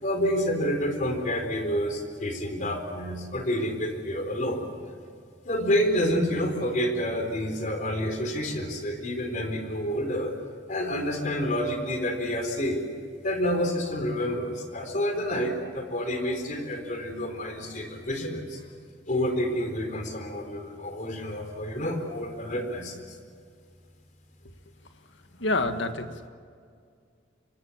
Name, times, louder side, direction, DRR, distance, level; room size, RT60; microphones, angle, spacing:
voice 1, 0.0-4.7 5.4-10.3 10.7-12.9 13.2-18.6 19.1-23.2, equal, 45° left, 5 dB, 4.1 m, -28 dB
voice 2, 25.4-26.3, left 2 dB, 80° left, 8 dB, 1.7 m, -27 dB
26.0 x 24.5 x 7.3 m, 2.2 s
head